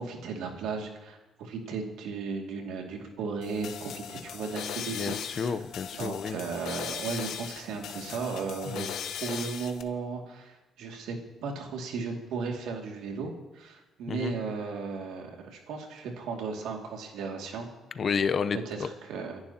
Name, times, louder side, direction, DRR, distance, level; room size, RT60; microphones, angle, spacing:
voice 1, 0.0-5.5 5.9-8.9 9.2-11.2 11.4-17.7 18.7-19.4, right 5 dB, 90° right, 2 dB, 2.4 m, -35 dB
sound 1, 3.4-9.8, left 8 dB, 80° left, 1.1 m, -39 dB
voice 2, 4.9-6.4 8.7-8.9 14.1-14.4 17.9-18.9, left 6 dB, 50° left, 12 dB, 0.8 m, -30 dB
27.5 x 11.0 x 2.9 m, 1.1 s
cardioid pair, 90°, 0 cm